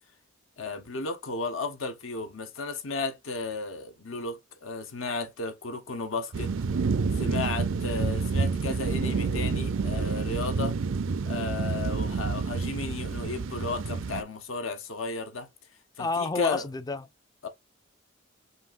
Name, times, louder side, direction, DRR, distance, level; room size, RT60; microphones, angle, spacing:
voice 1, 0.6-6.5 7.2-10.8 11.3-15.5 16.0-16.6 17.4-17.5, left 3 dB, 85° left, 1.0 m, -34 dB
sound 1, 6.3-14.2, right 4 dB, 75° right, 0.5 m, -28 dB
voice 2, 16.0-17.1, left 3 dB, 20° left, 0.3 m, -30 dB
5.6 x 2.6 x 2.5 m
head